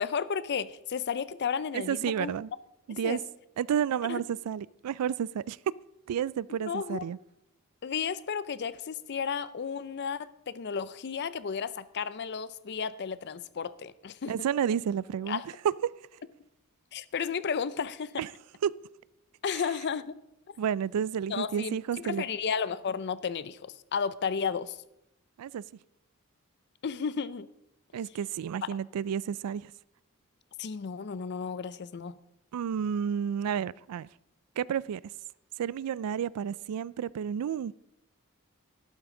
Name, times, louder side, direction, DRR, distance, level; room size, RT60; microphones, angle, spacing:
voice 1, 0.0-2.3 2.9-3.2 4.1-4.2 6.7-7.1 7.8-14.3 15.3-15.4 16.9-18.2 19.4-20.2 21.3-24.8 26.8-27.5 30.6-32.2, left 6 dB, 50° left, 0.5 m, -33 dB
voice 2, 1.7-2.5 2.9-3.2 3.6-5.6 6.1-7.2 14.3-15.4 18.2-18.3 18.6-18.7 20.6-22.2 25.4-25.6 27.9-29.7 32.5-34.1 34.6-35.0 35.6-37.7, right 8 dB, 90° right, 0.3 m, -31 dB
12.5 x 12.0 x 3.8 m
head